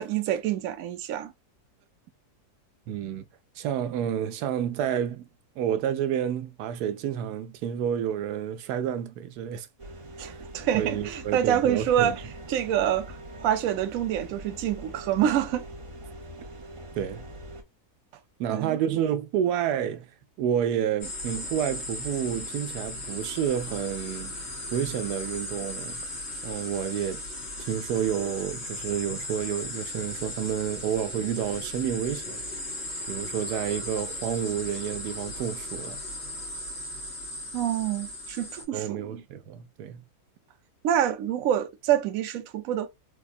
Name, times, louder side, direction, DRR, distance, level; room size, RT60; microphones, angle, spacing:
voice 1, 0.0-1.3 10.2-12.2 12.5-15.6 18.5-18.8 37.5-39.2 40.8-42.9, right 10 dB, 70° right, 1.0 m, -27 dB
voice 2, 2.9-3.2 3.6-5.3 5.6-9.7 10.2-10.4 10.7-12.2 17.0-17.2 18.4-20.1 20.4-24.3 24.7-26.1 26.4-27.2 27.6-32.4 33.1-36.0 38.7-40.0, right 9 dB, 90° right, 1.1 m, -29 dB
sound 1, 9.8-17.6, right 1 dB, 45° right, 0.4 m, -42 dB
sound 2, 21.0-38.7, left 1 dB, 45° left, 1.7 m, -37 dB
4.1 x 2.3 x 2.4 m
omnidirectional pair, 1.6 m